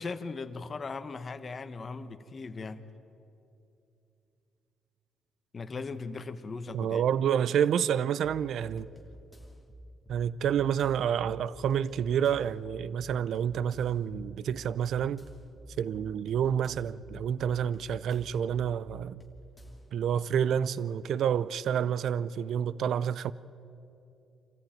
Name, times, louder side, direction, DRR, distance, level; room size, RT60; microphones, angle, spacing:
voice 1, 0.0-2.8 5.5-7.0, left 4 dB, 40° left, 1.3 m, -38 dB
voice 2, 6.7-8.9 10.1-15.2 15.8-19.2 19.9-23.3, right 8 dB, 70° right, 0.5 m, -29 dB
sound 1, 8.2-19.9, equal, 5° left, 2.7 m, -51 dB
26.5 x 14.5 x 9.1 m
cardioid pair, 90°, 0 cm